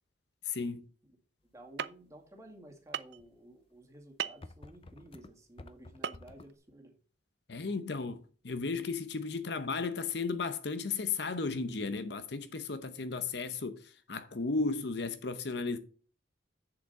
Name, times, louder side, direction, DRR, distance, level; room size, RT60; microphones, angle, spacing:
voice 1, 0.4-0.8 7.5-15.8, left 4 dB, 60° left, 0.8 m, -34 dB
voice 2, 1.5-7.0, right 1 dB, 15° right, 2.1 m, -54 dB
sound 1, 1.8-1.9 2.9-3.2 4.2-4.4 6.0-6.2 6.5-6.6, right 8 dB, 60° right, 0.4 m, -35 dB
sound 2, 3.2-3.3 3.9-4.0 4.4-6.6, left 2 dB, 30° left, 0.5 m, -51 dB
7.8 x 7.2 x 4.1 m
head